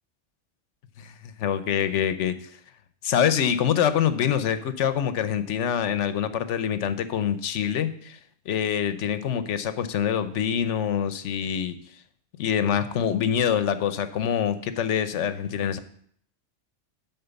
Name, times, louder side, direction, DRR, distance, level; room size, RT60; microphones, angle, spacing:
voice 1, 1.0-2.3 3.0-8.2 8.5-11.7 12.4-15.8, left 8 dB, 75° left, 12 dB, 1.0 m, -25 dB
10.5 x 4.3 x 6.9 m, 0.63 s
omnidirectional pair, 1.3 m